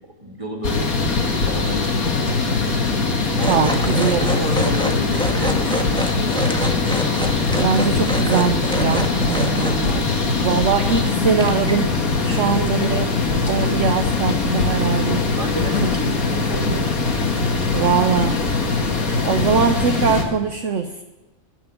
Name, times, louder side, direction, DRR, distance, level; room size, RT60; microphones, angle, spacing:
voice 1, 0.2-2.5 3.4-6.6 9.8-10.2 12.3-12.5 15.4-17.1 17.5-17.9, equal, 20° right, 0 dB, 2.7 m, -31 dB
sound 1, 0.6-20.2, left 4 dB, 85° left, 2.4 m, -21 dB
sound 2, 3.4-10.1 10.5-11.0 11.3-11.9 12.4-12.5, left 1 dB, 5° left, 1.6 m, -27 dB
voice 2, 3.5-4.4 7.5-10.0 10.4-11.9 12.2-13.1 13.5-15.2 15.8-15.9 16.7-16.8 17.7-18.4 19.2-21.0, right 6 dB, 60° right, 6 dB, 1.2 m, -21 dB
16.0 x 7.0 x 9.9 m, 1.2 s
omnidirectional pair, 1.5 m